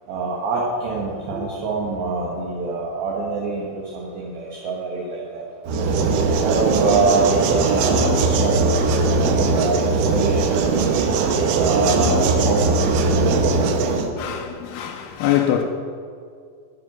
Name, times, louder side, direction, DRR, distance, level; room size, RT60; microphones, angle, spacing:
voice 1, 0.1-5.4 6.4-10.9 11.6-13.6, right 3 dB, 65° right, 2.9 m, -25 dB
sound 1, 5.7-14.1, right 3 dB, 80° right, 3.2 m, -19 dB
voice 2, 14.2-15.6, left 11 dB, 85° left, 2.4 m, -23 dB
12.5 x 10.0 x 6.0 m
omnidirectional pair, 5.4 m